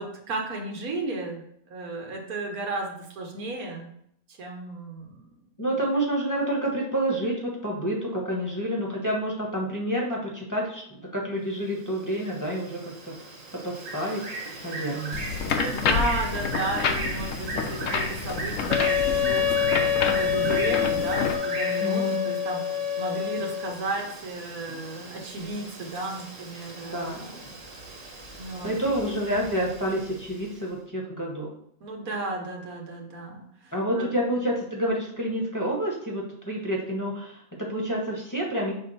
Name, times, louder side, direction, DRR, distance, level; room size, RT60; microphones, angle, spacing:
voice 1, 0.0-3.9 4.3-5.3 15.5-19.4 20.0-27.4 28.3-28.8 31.8-34.1, right 2 dB, 85° right, 1 dB, 1.6 m, -34 dB
voice 2, 5.6-10.8 11.1-13.2 13.6-14.2 14.6-15.2 15.4-15.6 15.9-16.0 21.8-22.2 26.9-27.4 28.6-31.5 33.7-38.7, right 1 dB, 15° left, -3 dB, 1.1 m, -28 dB
Bird, 11.8-30.5, right 2 dB, 65° right, 1.5 m, -38 dB
sound 1, 15.1-21.3, left 6 dB, 70° left, 1.0 m, -29 dB
Wind instrument woodwind instrument, 18.7-23.8, left 8 dB, 40° right, 0.5 m, -26 dB
6.1 x 3.8 x 4.1 m, 0.71 s
omnidirectional pair, 1.5 m